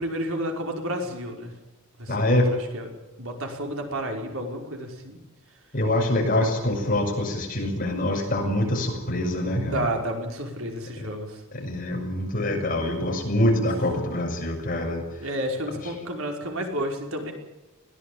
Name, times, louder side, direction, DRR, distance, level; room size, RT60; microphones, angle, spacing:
voice 1, 0.0-1.5 2.0-2.9 3.2-5.2 9.6-11.4 15.2-17.3, right 1 dB, 70° right, 2 dB, 5.5 m, -31 dB
voice 2, 2.1-2.5 5.7-9.8 11.5-15.0, left 1 dB, 40° left, 2 dB, 6.9 m, -25 dB
21.5 x 17.5 x 9.0 m, 1.0 s
head